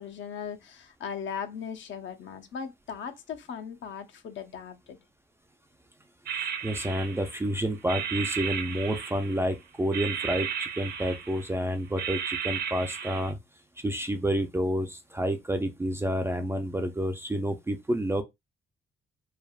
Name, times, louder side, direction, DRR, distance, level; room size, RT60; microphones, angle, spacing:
voice 1, 0.0-5.0, left 7 dB, 65° left, 0.6 m, -38 dB
voice 2, 6.3-13.4 13.8-18.2, right 1 dB, 10° right, 0.3 m, -29 dB
sound 1, 6.3-7.5 7.9-9.5 9.9-11.6 12.0-13.3, right 8 dB, 50° right, 0.6 m, -34 dB
3.3 x 2.2 x 2.3 m
cardioid pair, 145°, 21 cm